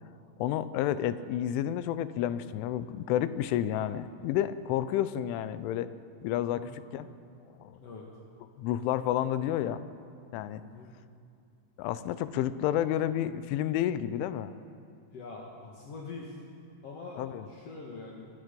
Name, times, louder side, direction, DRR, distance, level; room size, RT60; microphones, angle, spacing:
voice 1, 0.4-5.9 6.2-7.1 7.6-7.8 8.6-9.8 10.3-10.6 11.8-14.5 17.2-17.5, left 11 dB, 85° left, 13 dB, 3.2 m, -30 dB
voice 2, 15.1-16.4 16.8-18.3, left 3 dB, 60° left, -2 dB, 1.6 m, -44 dB
24.5 x 20.5 x 5.3 m, 2.4 s
omnidirectional pair, 5.5 m